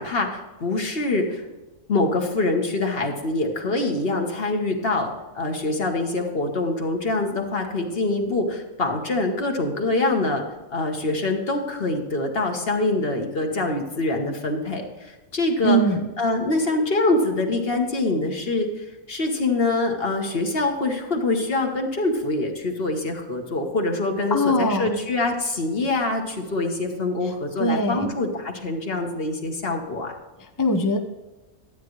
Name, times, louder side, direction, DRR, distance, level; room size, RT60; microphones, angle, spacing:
voice 1, 0.0-1.4 1.9-10.4 10.7-15.8 16.2-30.2, left 2 dB, 45° left, 3 dB, 1.5 m, -25 dB
voice 2, 15.6-16.1 24.3-25.0 27.2-27.3 27.6-28.1 30.4-31.0, equal, 20° left, 4 dB, 0.5 m, -22 dB
12.5 x 9.1 x 3.2 m, 1.1 s
omnidirectional pair, 1.5 m